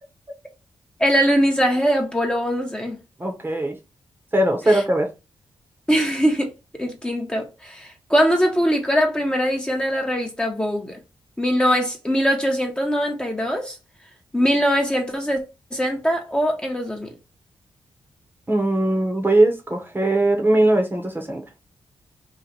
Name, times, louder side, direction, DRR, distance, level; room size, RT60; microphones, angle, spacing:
voice 1, 1.0-3.0 4.7-4.8 5.9-6.5 6.8-11.0 11.4-13.8 14.3-15.4 15.7-17.1, equal, 10° left, 1.1 m, -21 dB
voice 2, 3.2-3.8 4.3-5.1 18.5-21.4, right 1 dB, 20° right, 1.1 m, -20 dB
3.1 x 2.5 x 3.9 m
cardioid pair, 65°, 9 cm